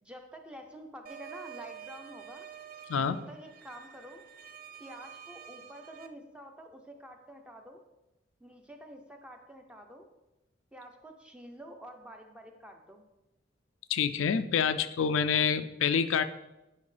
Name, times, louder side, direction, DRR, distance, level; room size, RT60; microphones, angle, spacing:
voice 1, 0.0-2.5 3.1-4.2 4.8-7.8 8.4-10.1 10.7-13.0, equal, 5° right, 4 dB, 0.6 m, -48 dB
sound 1, 1.1-6.1, right 9 dB, 45° right, 0.4 m, -48 dB
voice 2, 13.9-16.2, left 7 dB, 90° left, 11 dB, 0.4 m, -27 dB
9.5 x 5.2 x 3.3 m, 0.98 s
head